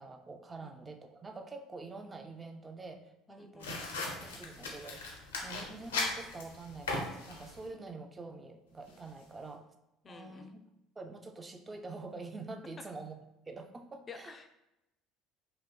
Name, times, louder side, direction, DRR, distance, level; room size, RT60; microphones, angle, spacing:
voice 1, 0.0-5.0 5.4-9.6 10.1-10.6 11.0-13.2 13.5-14.3, right 3 dB, 25° right, 5 dB, 0.4 m, -46 dB
voice 2, 3.3-3.7 10.0-10.5 12.8-12.9 14.1-14.5, left 5 dB, 35° left, 7 dB, 0.4 m, -50 dB
sound 1, 3.6-7.7, left 3 dB, 90° left, 0.5 m, -38 dB
4.1 x 2.6 x 2.2 m, 0.90 s
hypercardioid pair, 65°, 0 cm